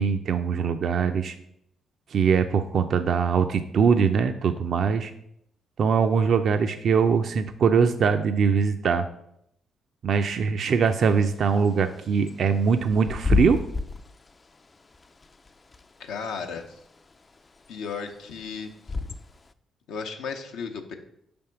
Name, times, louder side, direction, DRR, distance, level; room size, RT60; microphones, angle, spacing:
voice 1, 0.0-1.4 2.1-5.1 5.8-9.1 10.0-13.6, right 6 dB, 65° right, 8 dB, 0.4 m, -22 dB
Bird / Wind, 10.8-19.5, left 4 dB, 35° left, 0.3 m, -32 dB
voice 2, 16.0-16.8 17.7-18.7 19.9-20.9, left 5 dB, 80° left, 5 dB, 0.7 m, -34 dB
5.2 x 3.5 x 5.7 m, 0.73 s
supercardioid pair, 65°, 0 cm